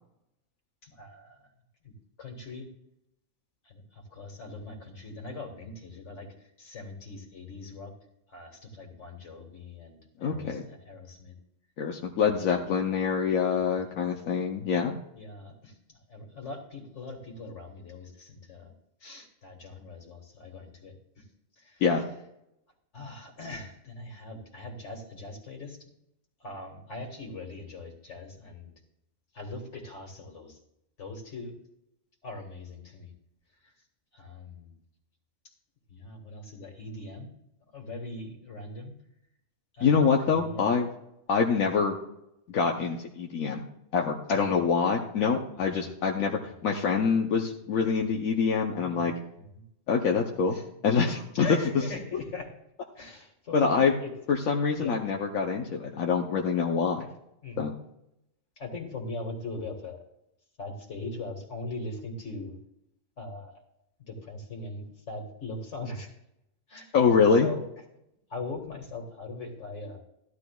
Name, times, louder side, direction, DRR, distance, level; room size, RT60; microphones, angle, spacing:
voice 1, 0.8-1.5 1.8-1.9 2.2-2.7 3.6-7.9 8.3-11.4 12.2-12.6 13.5-14.0 15.1-18.7 19.0-21.3 21.6-22.0 22.9-25.9 26.4-28.7 29.3-30.6 31.0-31.6 32.2-33.1 33.6-33.7 34.1-34.7 35.9-37.3 37.7-38.9 39.7-40.7 41.3-41.4 42.8-42.9 44.3-44.6 45.6-45.9 47.8-48.0 48.8-49.6 50.5-50.7 51.3-52.5 53.0-54.1 54.8-55.0 57.4-57.8 58.6-60.0 60.6-62.6 63.2-63.6 64.0-66.1 66.7-67.0 67.4-67.6 68.3-70.0, left 3 dB, 60° left, 2 dB, 2.2 m, -41 dB
voice 2, 10.2-10.7 11.8-15.0 21.8-22.0 39.8-40.9 41.3-42.0 42.5-43.6 43.9-49.1 49.9-50.6 50.8-51.5 53.5-53.9 54.3-57.1 57.6-57.7 66.9-67.5, left 5 dB, 85° left, 1 dB, 1.2 m, -25 dB
14.5 x 11.5 x 2.3 m, 0.81 s
omnidirectional pair, 1.4 m